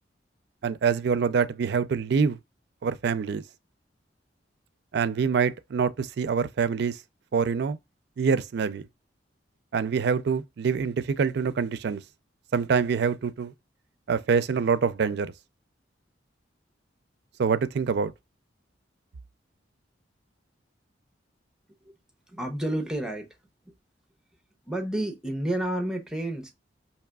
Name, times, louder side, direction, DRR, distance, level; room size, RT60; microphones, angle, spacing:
voice 1, 0.6-2.4 2.8-3.4 4.9-7.0 7.3-7.8 8.2-8.8 9.7-12.0 12.5-13.5 14.1-15.3 17.4-18.1, right 6 dB, 60° right, 0.4 m, -25 dB
voice 2, 22.3-23.3 23.6-23.7 24.7-26.5, right 1 dB, 5° right, 0.7 m, -30 dB
4.8 x 2.9 x 2.2 m
head